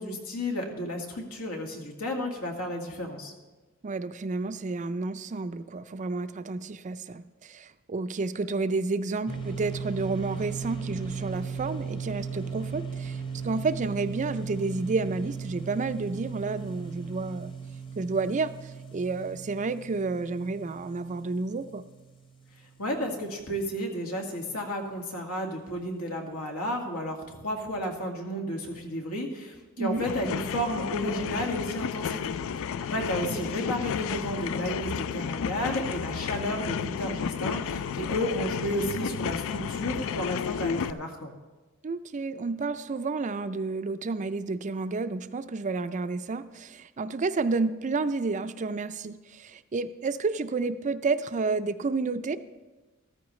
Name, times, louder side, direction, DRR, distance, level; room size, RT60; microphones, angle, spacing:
voice 1, 0.0-3.3 22.8-41.3, equal, 80° left, 1 dB, 1.9 m, -32 dB
voice 2, 3.8-17.5 18.0-21.8 29.8-30.0 33.3-33.5 41.8-52.4, right 3 dB, 35° right, 12 dB, 0.4 m, -30 dB
sound 1, 9.3-22.8, right 5 dB, 20° left, 1.0 m, -37 dB
sound 2, 29.9-40.9, left 7 dB, 65° left, 0.3 m, -32 dB
14.0 x 13.5 x 3.2 m, 1.2 s
head